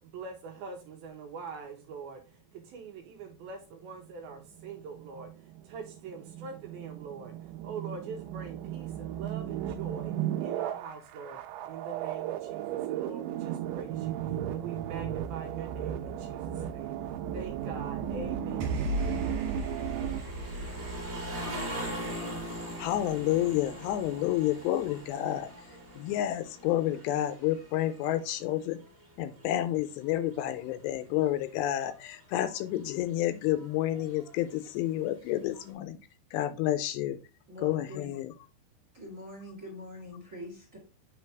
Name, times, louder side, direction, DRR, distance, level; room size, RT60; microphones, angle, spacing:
voice 1, 0.0-17.0 17.3-19.7, right 5 dB, 75° right, 2 dB, 2.4 m, -44 dB
sound 1, 3.8-20.2, right 11 dB, 90° right, 2.9 m, -35 dB
sound 2, 18.6-25.0, equal, 55° right, 2.8 m, -37 dB
sound 3, 18.9-28.9 29.3-30.8 31.4-31.5 31.7-32.6 33.5-35.0 35.5-35.7, equal, 15° right, 2.3 m, -42 dB
voice 2, 22.8-25.5 26.0-28.8 29.2-36.0 36.3-37.2 37.6-38.3, left 13 dB, 80° left, 11 dB, 2.6 m, -30 dB
voice 3, 37.5-38.1 38.9-40.8, left 1 dB, 35° right, -1 dB, 1.4 m, -44 dB
8.5 x 4.1 x 3.4 m, 0.30 s
omnidirectional pair, 5.0 m